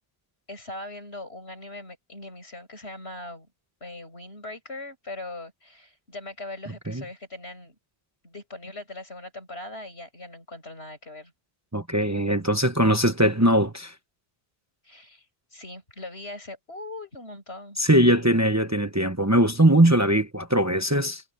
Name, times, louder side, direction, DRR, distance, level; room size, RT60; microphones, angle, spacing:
voice 1, 0.5-3.5 3.8-7.7 8.2-11.3 14.8-15.2 15.5-17.8, left 2 dB, 85° left, 8.4 m, -40 dB
voice 2, 11.7-13.9 17.8-21.2, right 1 dB, 15° right, 1.0 m, -21 dB
omnidirectional pair, 1.1 m